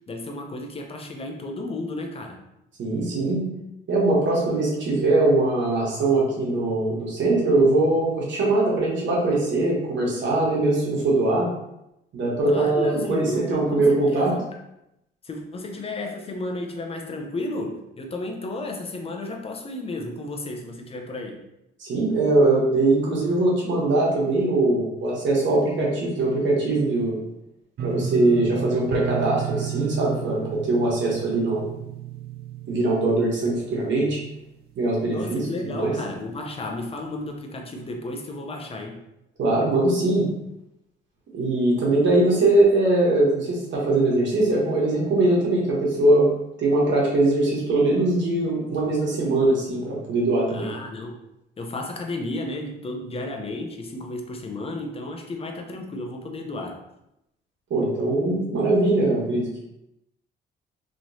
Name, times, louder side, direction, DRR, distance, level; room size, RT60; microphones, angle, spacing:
voice 1, 0.1-2.4 12.5-14.4 15.2-21.4 35.0-39.0 50.5-51.2 51.6-56.8, left 2 dB, 30° left, 2 dB, 0.7 m, -33 dB
voice 2, 2.8-3.5 3.9-11.5 12.1-14.4 21.8-27.2 27.8-31.6 32.7-34.2 34.8-35.9 39.4-40.3 41.3-46.3 46.6-50.7 57.7-59.6, right 2 dB, 70° right, -3 dB, 1.2 m, -21 dB
sound 1, 27.8-34.6 34.9-35.5 35.9-36.0, right 9 dB, 50° right, 0.4 m, -33 dB
3.1 x 2.9 x 2.7 m, 0.85 s
cardioid pair, 90°, 20 cm